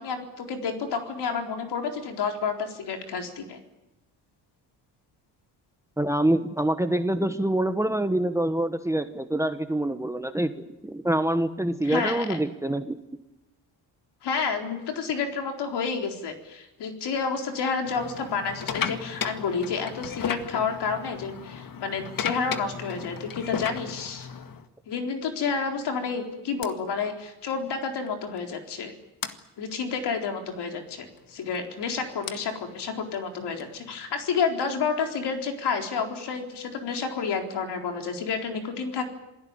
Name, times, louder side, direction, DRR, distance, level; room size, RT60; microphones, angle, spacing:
voice 1, 0.0-3.6 11.8-12.4 14.2-24.3 24.9-28.9 29.6-39.1, left 5 dB, 65° left, 4 dB, 4.2 m, -30 dB
voice 2, 6.0-13.0, right 1 dB, 5° right, 10 dB, 1.2 m, -26 dB
sound 1, 17.8-24.7 25.4-25.6 26.6-26.7 28.1-28.2 28.4-28.5 29.2-29.3 31.1-34.3, left 7 dB, 50° left, 1.8 m, -35 dB
27.5 x 17.5 x 9.0 m, 1.0 s
cardioid pair, 120°, 42 cm